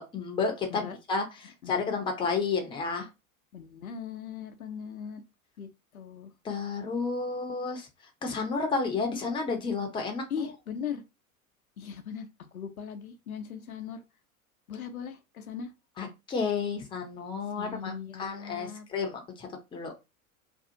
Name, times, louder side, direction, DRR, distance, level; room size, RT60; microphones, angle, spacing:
voice 1, 0.0-3.1 6.4-7.9 8.2-10.5 16.0-17.9 18.2-19.9, left 4 dB, 10° left, 0.6 m, -31 dB
voice 2, 1.6-2.0 3.5-5.2 5.6-6.3 10.3-11.0 11.8-14.0 14.7-15.7 17.6-18.9, left 7 dB, 80° left, 0.6 m, -39 dB
2.6 x 2.3 x 2.7 m
figure-of-eight pair, 85°, 42 cm